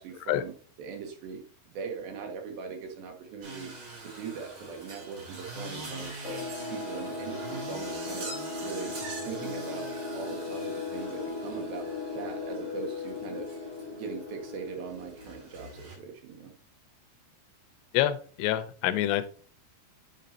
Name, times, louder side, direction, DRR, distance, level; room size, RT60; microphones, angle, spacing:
voice 1, 0.0-1.4 1.7-3.7 4.0-6.4 6.7-8.3 8.6-9.0 9.2-13.5 13.9-16.5, right 6 dB, 75° right, 3 dB, 2.6 m, -40 dB
sound 1, 3.4-16.0, right 2 dB, 40° right, 2.2 m, -44 dB
sound 2, 6.2-15.6, left 3 dB, 60° left, 2.7 m, -37 dB
voice 2, 17.9-19.3, left 13 dB, 90° left, 11 dB, 2.8 m, -27 dB
9.5 x 5.2 x 2.8 m, 0.40 s
omnidirectional pair, 4.8 m